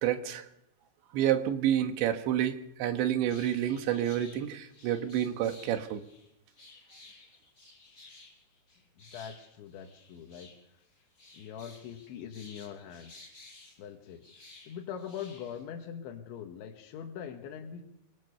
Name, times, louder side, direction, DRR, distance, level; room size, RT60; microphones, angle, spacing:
voice 1, 0.0-0.5 1.1-6.0, right 11 dB, 80° right, 8 dB, 3.6 m, -29 dB
sound 1, 3.3-15.6, left 3 dB, 25° left, 5.9 m, -55 dB
voice 2, 9.0-10.5 11.3-13.3 13.8-14.2 14.7-17.8, left 8 dB, 90° left, 4 dB, 3.9 m, -42 dB
26.0 x 24.0 x 7.0 m, 0.84 s
omnidirectional pair, 5.2 m